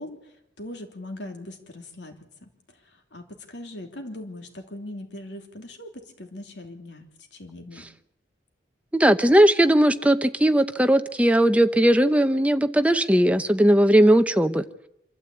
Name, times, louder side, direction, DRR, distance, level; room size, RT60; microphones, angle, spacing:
voice 1, 0.0-5.9 6.2-7.9, left 1 dB, 70° left, 4 dB, 3.0 m, -40 dB
voice 2, 8.9-14.6, right 1 dB, 5° right, 9 dB, 0.8 m, -18 dB
26.5 x 13.0 x 8.5 m, 0.83 s
head